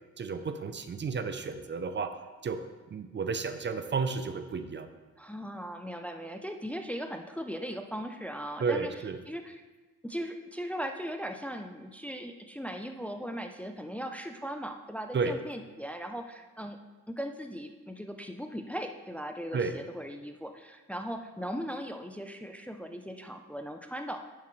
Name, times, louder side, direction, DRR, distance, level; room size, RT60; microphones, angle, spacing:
voice 1, 0.2-2.2 2.4-2.6 2.9-4.9 8.6-9.2 15.1-15.4 19.5-19.7, right 4 dB, 35° right, 9 dB, 0.7 m, -32 dB
voice 2, 5.2-8.9 9.3-9.6 10.0-16.8 17.1-24.2, equal, 5° left, 5 dB, 0.5 m, -38 dB
9.9 x 7.5 x 3.2 m, 1.2 s
cardioid pair, 90°, 30 cm